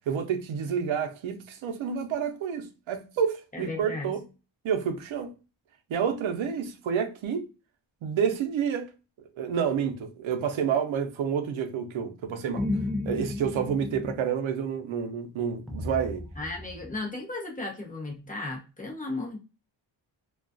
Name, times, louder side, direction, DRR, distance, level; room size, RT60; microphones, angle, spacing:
voice 1, 0.1-4.2 4.6-5.3 5.9-7.5 8.0-8.9 9.4-12.7 13.1-16.2, right 7 dB, 75° right, 0.6 m, -29 dB
voice 2, 3.5-4.1 16.4-19.4, left 2 dB, 15° left, 0.8 m, -35 dB
sound 1, 12.6-14.2 15.7-16.9, left 2 dB, ahead, 0.4 m, -33 dB
2.3 x 2.3 x 2.4 m
wide cardioid pair, 115°, 48 cm